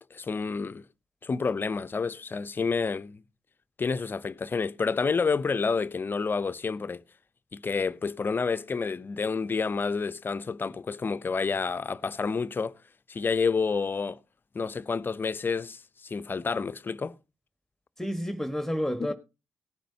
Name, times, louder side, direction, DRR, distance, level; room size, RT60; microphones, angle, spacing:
voice 1, 0.1-0.8 1.2-3.2 3.8-7.0 7.5-12.8 13.1-14.2 14.5-17.1 19.0-19.1, left 5 dB, 35° left, 0.7 m, -29 dB
voice 2, 18.0-19.1, equal, 5° left, 1.4 m, -30 dB
18.0 x 10.0 x 2.8 m
hypercardioid pair, 45°, 6 cm